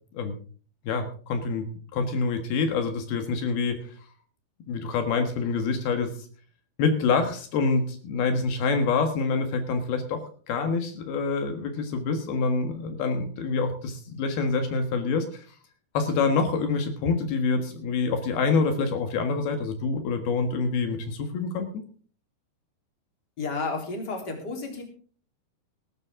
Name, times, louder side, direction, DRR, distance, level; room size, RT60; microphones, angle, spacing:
voice 1, 0.9-3.8 4.7-6.1 6.8-10.2 10.5-15.4 16.0-21.7, left 4 dB, 75° left, 6 dB, 3.5 m, -26 dB
voice 2, 23.4-24.8, left 3 dB, 25° left, 2 dB, 4.0 m, -31 dB
19.5 x 12.0 x 3.7 m, 0.43 s
omnidirectional pair, 4.5 m